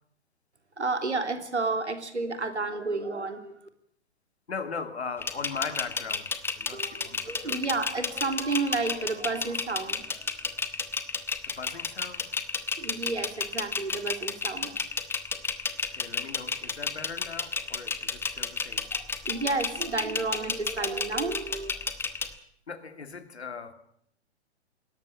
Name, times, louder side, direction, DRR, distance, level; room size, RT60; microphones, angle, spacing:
voice 1, 0.8-3.7 6.7-10.7 12.8-14.8 18.9-21.7, right 3 dB, 75° right, 7 dB, 3.3 m, -31 dB
voice 2, 4.5-7.6 11.5-12.4 15.8-18.9 22.7-23.7, left 5 dB, 70° left, 8 dB, 2.9 m, -39 dB
sound 1, 5.2-22.4, left 4 dB, 5° left, 1.3 m, -31 dB
20.5 x 18.0 x 8.8 m, 0.69 s
figure-of-eight pair, 120°, 34 cm